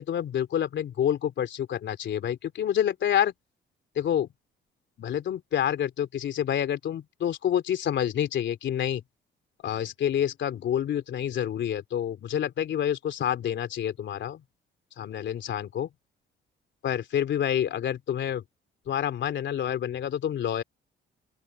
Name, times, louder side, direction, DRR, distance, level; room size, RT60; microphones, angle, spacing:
voice 1, 0.0-3.3 3.9-4.3 5.0-9.0 9.6-14.4 15.0-15.9 16.8-18.4 18.9-20.6, left 10 dB, 65° left, 3.2 m, -28 dB
open air
cardioid pair, 90°, 20 cm